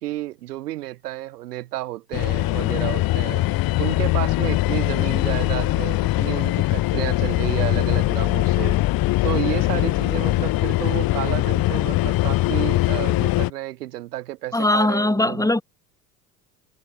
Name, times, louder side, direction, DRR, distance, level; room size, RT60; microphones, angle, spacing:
voice 1, 0.0-3.4 3.8-8.8 9.2-15.5, right 15 dB, 75° right, 4.3 m, -31 dB
sound 1, 2.1-13.5, left 18 dB, 45° left, 1.6 m, -21 dB
voice 2, 14.5-15.6, left 2 dB, 5° left, 5.5 m, -20 dB
hypercardioid pair, 75°, 47 cm